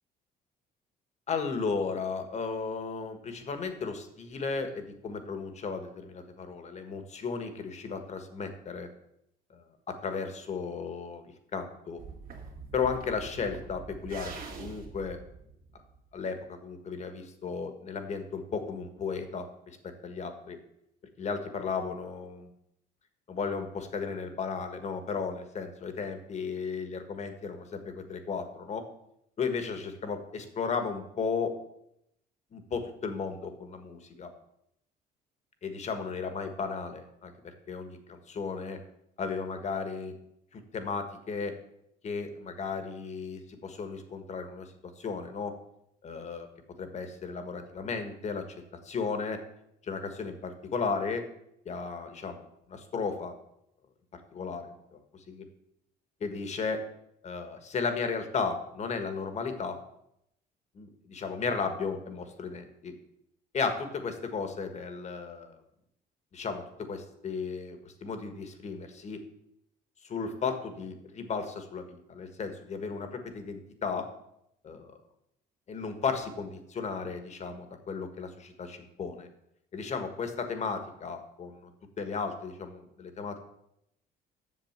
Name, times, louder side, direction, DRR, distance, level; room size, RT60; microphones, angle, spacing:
voice 1, 1.3-8.9 9.5-12.0 12.7-15.2 16.1-20.6 21.2-22.5 23.3-28.8 29.4-31.6 32.5-34.3 35.6-38.8 39.2-40.1 40.5-41.6 42.0-45.5 46.0-46.5 46.8-48.5 48.8-49.4 49.8-51.3 51.6-52.4 52.7-53.3 54.3-55.0 55.3-55.4 56.2-56.8 57.2-59.8 60.7-62.9 63.5-65.6 66.3-69.2 70.0-74.1 74.6-75.0 75.7-79.3 79.7-81.7 82.0-83.4, left 5 dB, 40° left, 7 dB, 1.6 m, -35 dB
sound 1, 12.0-16.2, right 5 dB, 55° right, 2.2 m, -45 dB
7.7 x 6.9 x 7.3 m, 0.78 s
cardioid pair, 110°, 17 cm